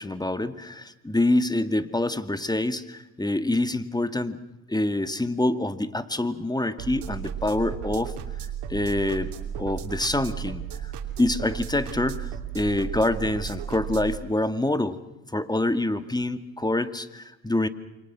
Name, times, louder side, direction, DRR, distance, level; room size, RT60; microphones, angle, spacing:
voice 1, 0.0-4.4 4.7-8.1 8.7-10.9 11.2-12.3 12.5-15.0 15.3-17.7, left 1 dB, 10° left, 11 dB, 2.1 m, -26 dB
sound 1, 6.8-14.2, right 9 dB, 70° right, 3.1 m, -34 dB
28.5 x 25.5 x 6.3 m, 1.0 s
hypercardioid pair, 60°, 41 cm